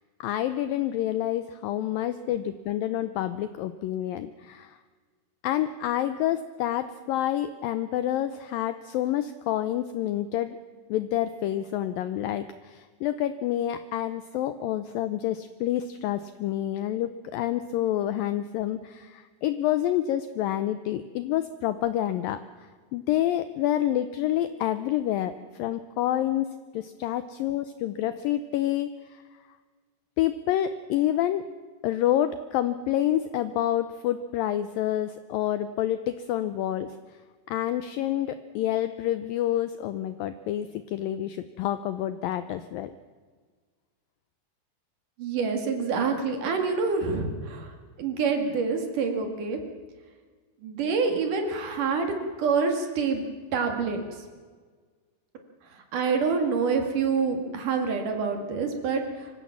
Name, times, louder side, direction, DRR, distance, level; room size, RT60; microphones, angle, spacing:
voice 1, 0.2-4.8 5.4-10.6 10.9-22.4 22.9-26.5 26.7-29.2 30.2-31.4 31.8-37.0 37.5-42.9, left 12 dB, 80° left, 12 dB, 2.0 m, -28 dB
voice 2, 45.2-47.7 48.0-49.6 50.6-52.1 52.4-53.2 53.5-54.0 55.7-59.3, right 5 dB, 55° right, 5 dB, 3.3 m, -27 dB
25.0 x 15.5 x 7.2 m, 1.5 s
omnidirectional pair, 4.8 m